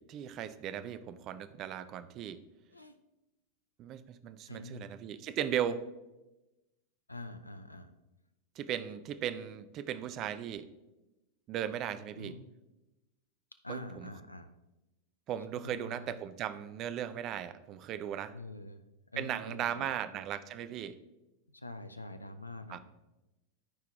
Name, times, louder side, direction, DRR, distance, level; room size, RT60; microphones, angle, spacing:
voice 1, 0.0-2.4 3.8-5.8 8.6-10.7 11.5-12.4 13.7-14.1 15.3-18.4 19.2-21.0 22.7-22.8, right 10 dB, 35° right, 12 dB, 0.5 m, -37 dB
voice 2, 4.5-4.9 7.1-7.9 12.2-12.4 13.6-14.5 15.5-16.2 18.3-18.8 19.1-19.9 21.5-22.8, left 1 dB, 85° left, 10 dB, 0.6 m, -45 dB
13.0 x 4.7 x 3.5 m, 1.0 s
figure-of-eight pair, 90°, 0 cm